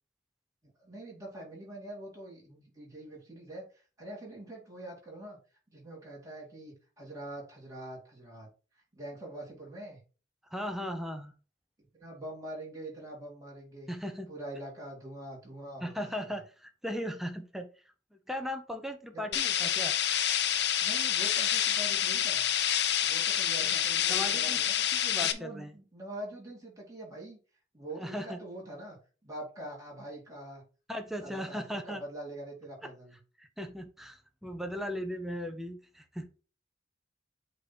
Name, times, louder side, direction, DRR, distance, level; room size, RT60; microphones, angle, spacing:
voice 1, 0.6-5.4 5.7-8.5 8.9-10.0 11.8-13.9 14.3-16.4 19.1-19.7 20.8-22.5 23.0-27.4 27.7-30.6 31.2-33.2, right 1 dB, 20° right, -3 dB, 2.7 m, -44 dB
voice 2, 10.5-11.3 13.9-14.3 15.8-17.7 18.3-19.9 23.6-23.7 24.1-25.7 28.0-28.4 30.9-32.0 33.4-36.3, equal, ahead, 5 dB, 0.7 m, -37 dB
sound 1, 19.3-25.3, left 10 dB, 65° left, 0.6 m, -28 dB
8.1 x 3.0 x 4.1 m, 0.35 s
head